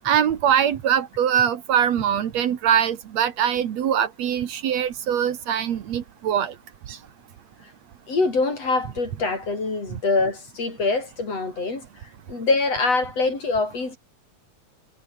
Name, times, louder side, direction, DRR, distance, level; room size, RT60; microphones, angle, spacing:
voice 1, 0.0-6.5 6.9-7.0, right 9 dB, 65° right, 2.6 m, -22 dB
voice 2, 8.1-11.8 12.3-14.0, left 3 dB, 55° left, 7.3 m, -24 dB
omnidirectional pair, 3.3 m